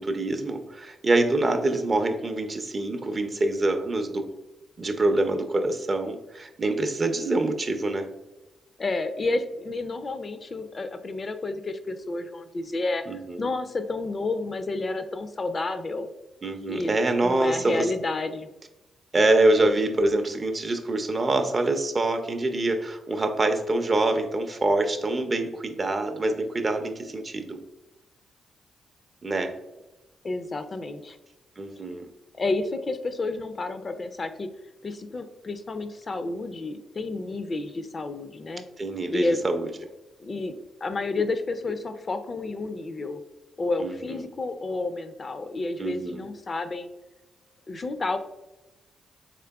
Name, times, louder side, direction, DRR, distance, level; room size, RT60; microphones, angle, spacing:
voice 1, 0.0-4.3 4.8-8.1 13.1-13.5 16.4-17.9 19.1-27.6 29.2-29.5 31.6-32.1 38.8-39.6 43.8-43.9 45.8-46.2, right 2 dB, 40° right, 6 dB, 0.4 m, -25 dB
voice 2, 8.8-16.1 16.7-18.5 30.2-31.2 32.4-34.5 34.8-38.6 39.1-39.4 40.2-40.6 40.8-43.2 43.6-46.9 47.7-48.2, left 2 dB, 45° left, 9 dB, 0.3 m, -30 dB
3.6 x 3.3 x 2.2 m, 1.0 s
supercardioid pair, 55°, 0 cm